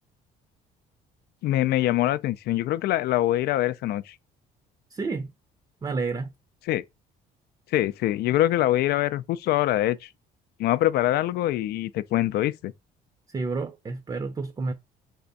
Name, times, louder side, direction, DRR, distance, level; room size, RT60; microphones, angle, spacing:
voice 1, 1.4-4.2 6.7-6.8 7.7-10.1 10.6-12.7, left 14 dB, 70° left, 0.4 m, -24 dB
voice 2, 4.9-5.3 5.8-6.3 13.3-14.7, right 4 dB, 25° right, 0.6 m, -30 dB
3.5 x 3.4 x 4.0 m
cardioid pair, 110°, 17 cm